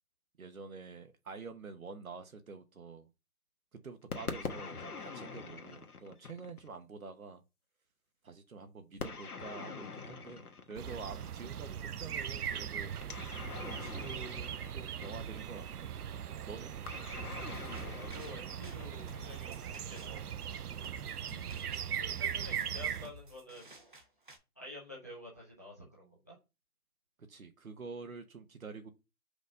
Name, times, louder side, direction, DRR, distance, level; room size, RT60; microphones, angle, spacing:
voice 1, 0.4-3.1 3.7-7.4 8.2-12.9 13.6-15.9 16.4-16.7 21.3-21.6 27.3-28.9, right 4 dB, 65° right, 1.2 m, -47 dB
sound 1, 4.1-6.8 9.0-11.4 13.0-15.5 16.9-19.3, left 5 dB, 80° left, 1.3 m, -44 dB
sound 2, 10.8-23.1, right 8 dB, 85° right, 0.6 m, -40 dB
sound 3, 17.3-24.4, equal, 35° right, 0.9 m, -55 dB
voice 2, 17.8-21.0 22.0-23.7 24.6-26.3, left 1 dB, 10° left, 0.9 m, -50 dB
5.1 x 4.1 x 5.2 m
hypercardioid pair, 175°, 45 cm